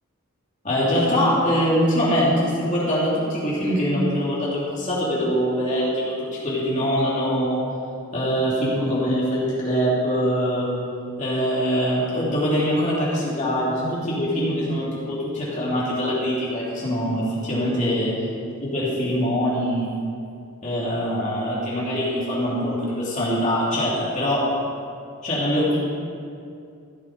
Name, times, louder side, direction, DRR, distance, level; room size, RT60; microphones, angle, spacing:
voice 1, 0.6-6.2 6.4-7.7 8.1-10.7 11.2-18.1 18.6-19.9 20.6-24.5 25.2-25.8, equal, 35° left, -7 dB, 3.1 m, -23 dB
15.5 x 6.6 x 5.2 m, 2.4 s
head